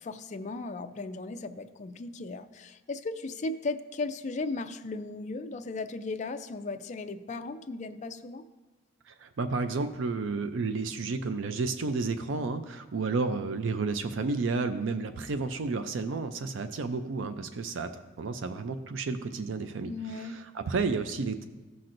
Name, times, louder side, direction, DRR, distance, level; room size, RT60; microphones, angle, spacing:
voice 1, 0.0-8.4 19.9-20.4, left 3 dB, 40° left, 8 dB, 0.4 m, -36 dB
voice 2, 9.1-17.9 18.2-21.4, right 4 dB, 75° right, 9 dB, 0.5 m, -31 dB
15.0 x 5.9 x 2.6 m, 1.3 s
head